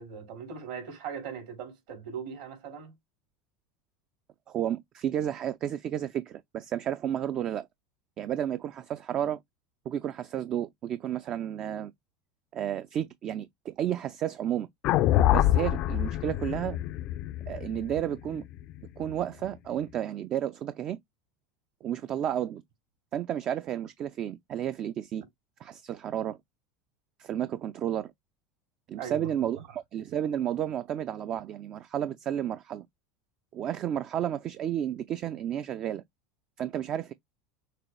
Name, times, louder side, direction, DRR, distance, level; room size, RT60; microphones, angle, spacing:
voice 1, 0.0-2.9 28.9-29.6, right 6 dB, 75° right, 3.7 m, -40 dB
voice 2, 4.5-7.7 8.2-9.4 9.9-11.9 12.5-14.7 15.3-16.8 17.5-18.4 19.0-21.0 21.8-22.6 23.1-25.2 25.6-26.4 27.2-28.1 28.9-32.9 33.5-36.0 36.6-37.1, right 10 dB, 40° right, 0.4 m, -32 dB
sound 1, 14.8-19.1, left 13 dB, 50° left, 0.4 m, -26 dB
6.6 x 2.3 x 3.1 m
supercardioid pair, 120°, 2 cm